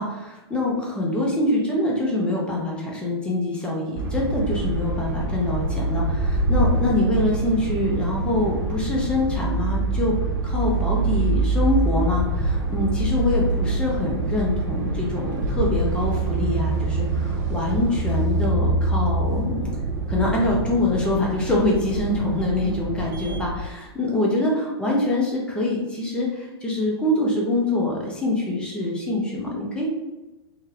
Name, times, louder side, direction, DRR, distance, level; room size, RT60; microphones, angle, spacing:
voice 1, 0.0-10.2 10.4-19.7 20.1-29.9, left 2 dB, 5° left, -3 dB, 0.7 m, -25 dB
sound 1, 4.0-23.5, right 2 dB, 40° right, 0.5 m, -25 dB
2.7 x 2.2 x 3.2 m, 1.1 s
figure-of-eight pair, 105°, 14 cm